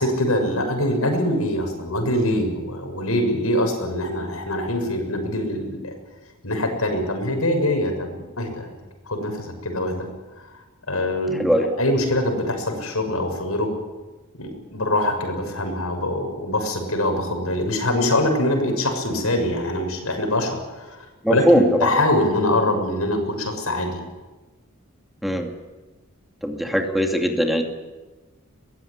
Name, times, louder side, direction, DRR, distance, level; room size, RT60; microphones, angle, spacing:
voice 1, 0.0-5.9 6.4-8.7 9.1-10.1 10.4-10.5 10.9-11.5 11.8-13.7 14.3-24.0, left 1 dB, 90° left, 5 dB, 6.7 m, -24 dB
voice 2, 11.4-11.7 21.2-21.9 25.2-25.5 26.4-27.6, equal, ahead, 3 dB, 2.5 m, -20 dB
23.0 x 18.5 x 9.9 m, 1.2 s
head